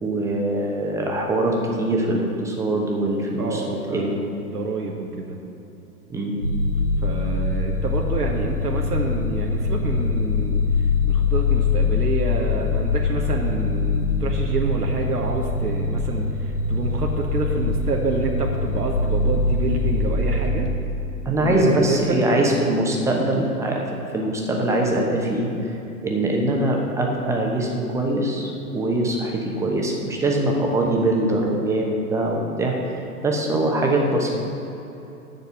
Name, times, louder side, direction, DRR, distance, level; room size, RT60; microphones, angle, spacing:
voice 1, 0.0-3.6 3.9-4.2 6.1-6.4 21.2-23.8 24.1-25.5 26.0-34.3, right 1 dB, 5° right, -1 dB, 0.9 m, -22 dB
voice 2, 3.4-5.4 7.0-20.7 21.3-22.2, right 3 dB, 80° right, 0 dB, 1.1 m, -28 dB
sound 1, 6.4-20.5, left 4 dB, 80° left, 1.6 m, -23 dB
7.2 x 6.5 x 7.3 m, 3.0 s
figure-of-eight pair, 105°, 46 cm